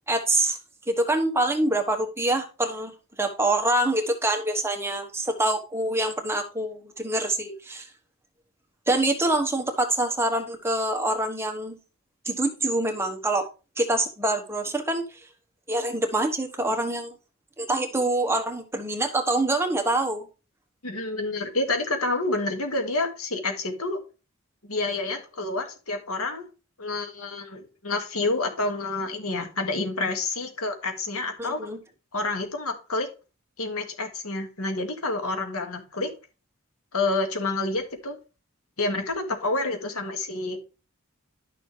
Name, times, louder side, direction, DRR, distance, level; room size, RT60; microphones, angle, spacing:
voice 1, 0.1-0.6 0.9-7.9 8.9-11.8 12.2-13.5 13.8-15.3 15.7-17.1 17.6-20.3 31.4-31.8, right 2 dB, 10° right, 4 dB, 1.2 m, -25 dB
voice 2, 20.8-24.0 24.6-26.5 26.8-31.7 32.1-33.1 33.6-36.1 36.9-38.2 38.8-40.6, left 2 dB, 85° left, 5 dB, 1.9 m, -28 dB
11.5 x 6.5 x 3.2 m, 0.31 s
head